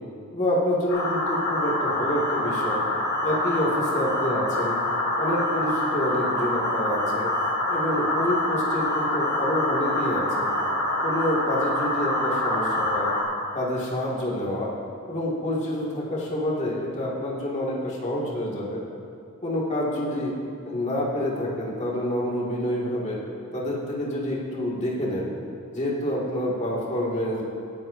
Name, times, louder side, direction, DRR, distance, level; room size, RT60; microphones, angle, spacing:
voice 1, 0.3-2.8 3.2-4.8 5.2-7.3 7.7-10.5 11.0-13.1 13.5-14.7 15.1-18.8 19.4-20.3 20.6-23.2 23.5-25.3 25.7-27.4, left 1 dB, 30° left, -5 dB, 2.1 m, -27 dB
sound 1, 0.9-13.2, left 1 dB, 85° left, 2.8 m, -26 dB
19.0 x 10.0 x 2.7 m, 2.4 s
head